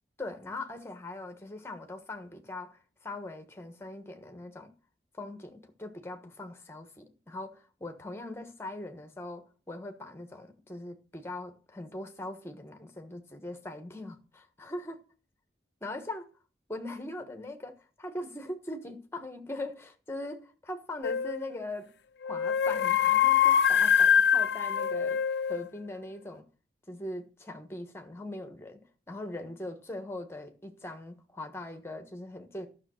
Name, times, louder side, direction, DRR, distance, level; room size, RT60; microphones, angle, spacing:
voice 1, 0.2-4.7 5.2-14.9 15.8-16.2 16.7-21.9 22.2-26.4 26.9-28.8 29.1-32.7, left 2 dB, 15° left, 1.3 m, -41 dB
sound 1, 21.0-21.4 22.2-25.7, left 8 dB, 70° left, 0.5 m, -24 dB
12.0 x 6.5 x 6.4 m
head